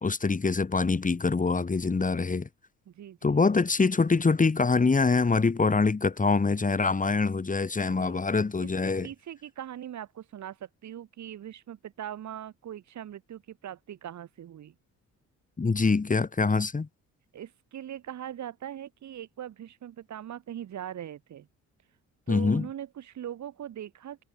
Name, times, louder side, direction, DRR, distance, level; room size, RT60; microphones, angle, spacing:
voice 1, 0.0-2.5 3.2-9.1 15.6-16.9 22.3-22.7, left 4 dB, 25° left, 2.9 m, -24 dB
voice 2, 2.9-3.4 7.9-8.2 8.6-14.7 17.3-21.5 22.3-24.2, right 10 dB, 65° right, 6.5 m, -41 dB
cardioid pair, 90°, 30 cm